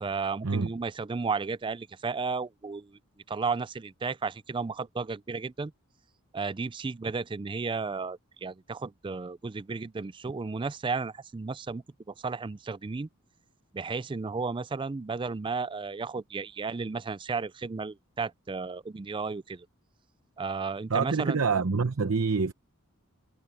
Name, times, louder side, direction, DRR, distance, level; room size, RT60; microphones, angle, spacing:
voice 1, 0.0-3.0 3.3-5.7 6.3-13.1 13.7-19.7 20.4-21.4, right 4 dB, 20° right, 0.4 m, -33 dB
voice 2, 20.9-22.5, right 4 dB, 65° right, 0.8 m, -26 dB
head